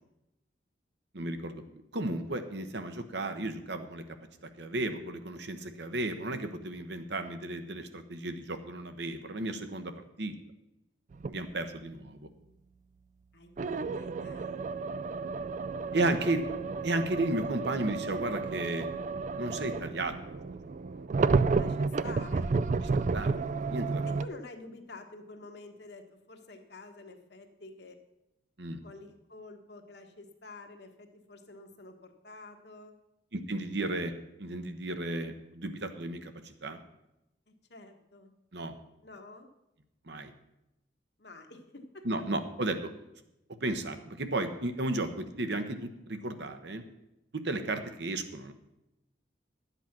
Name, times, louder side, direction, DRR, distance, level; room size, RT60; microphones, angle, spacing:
voice 1, 1.1-1.6 1.9-4.2 4.6-9.9 10.2-10.3 11.3-12.3 15.9-16.4 16.8-18.9 19.4-20.1 20.9-21.1 23.1-23.4 23.7-24.0 28.6-28.8 33.3-34.1 34.4-36.8 38.5-38.8 40.1-40.3 42.0-42.9 43.6-46.8 47.3-48.5, right 2 dB, 65° right, 8 dB, 1.1 m, -34 dB
sound 1, 11.1-11.4 13.6-24.3, right 4 dB, 40° right, 0.3 m, -31 dB
voice 2, 11.4-11.9 13.3-14.7 15.9-16.3 21.5-22.5 24.1-28.0 28.8-32.9 37.5-38.3 39.0-39.5 41.2-42.0, left 2 dB, 60° left, 4 dB, 1.4 m, -49 dB
11.5 x 8.2 x 6.0 m, 0.88 s
head